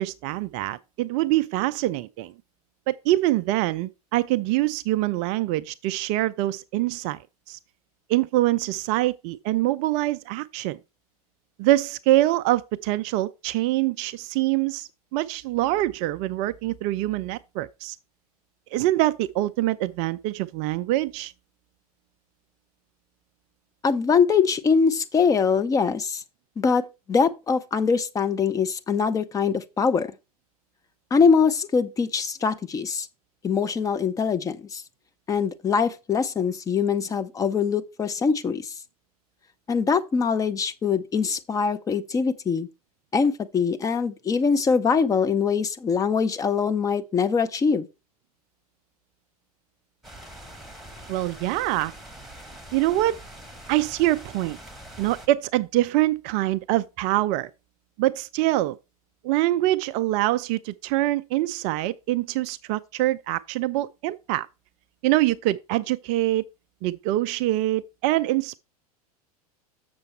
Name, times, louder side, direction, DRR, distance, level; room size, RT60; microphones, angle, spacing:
voice 1, 0.0-2.3 2.9-7.2 7.5-7.6 8.1-10.8 11.6-18.0 18.7-21.3 51.1-51.9 52.7-53.2 53.7-54.6 55.0-57.5 58.0-58.8 59.2-64.5 65.0-66.4 66.8-68.6, right 16 dB, 35° right, 0.4 m, -24 dB
voice 2, 23.8-26.2 26.6-30.1 31.1-33.1 33.4-34.8 35.3-38.7 39.7-42.7 43.1-47.9, left 5 dB, 15° left, 0.6 m, -23 dB
sound 1, 50.0-55.3, right 1 dB, ahead, 1.2 m, -43 dB
6.9 x 6.7 x 4.3 m
figure-of-eight pair, 90°, 20 cm